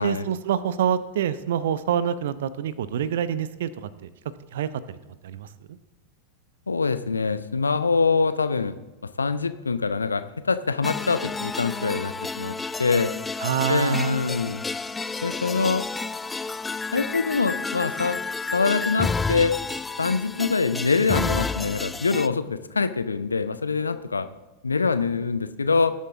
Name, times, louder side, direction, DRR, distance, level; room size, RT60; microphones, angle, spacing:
voice 1, 0.0-4.1 4.5-5.0 5.2-5.8 13.4-14.2, right 9 dB, 60° right, 16 dB, 0.7 m, -26 dB
voice 2, 6.7-8.7 9.2-13.1 13.7-14.6 15.2-15.8 16.9-18.2 18.5-19.5 20.0-24.3 24.6-25.9, left 4 dB, 75° left, 12 dB, 0.7 m, -24 dB
sound 1, 10.8-22.3, left 4 dB, 10° left, 0.3 m, -30 dB
19.5 x 8.4 x 3.6 m, 1.1 s
figure-of-eight pair, 90°, 0 cm